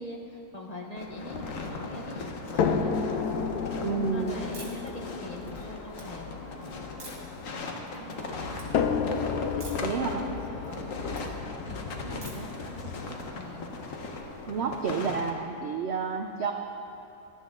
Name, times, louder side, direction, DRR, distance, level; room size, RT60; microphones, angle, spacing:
voice 1, 0.0-2.9 4.1-7.1 7.5-8.8 9.5-13.7, equal, 25° left, 0 dB, 1.2 m, -43 dB
sound 1, 1.0-15.3, left 3 dB, 55° left, 1.4 m, -38 dB
sound 2, 2.6-7.8 8.7-12.7 13.7-13.8 14.2-14.3, left 6 dB, 80° left, 1.2 m, -32 dB
voice 2, 3.8-4.4 9.8-10.3 14.5-16.5, right 5 dB, 60° right, 4 dB, 0.7 m, -30 dB
sound 3, 4.5-4.9 5.4-6.0 7.0-7.4 7.9-8.3 8.5-8.7 9.6-10.0 10.3-11.2 12.2-12.6, right 3 dB, 75° right, 2.6 m, -47 dB
16.5 x 12.5 x 3.8 m, 2.9 s
omnidirectional pair, 1.7 m